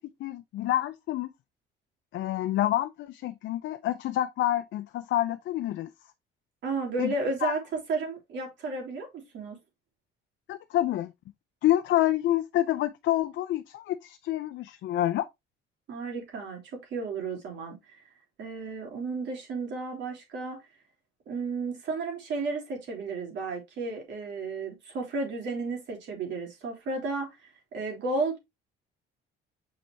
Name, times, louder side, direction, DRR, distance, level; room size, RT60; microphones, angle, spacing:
voice 1, 0.2-1.3 2.1-5.9 7.0-7.1 7.4-7.5 10.5-11.1 11.6-15.3, left 13 dB, 60° left, 0.6 m, -28 dB
voice 2, 6.6-9.6 15.9-18.0 18.4-20.6 21.3-27.4 27.7-28.4, right 3 dB, 60° right, 3.6 m, -33 dB
6.5 x 5.5 x 2.8 m
cardioid pair, 150°, 21 cm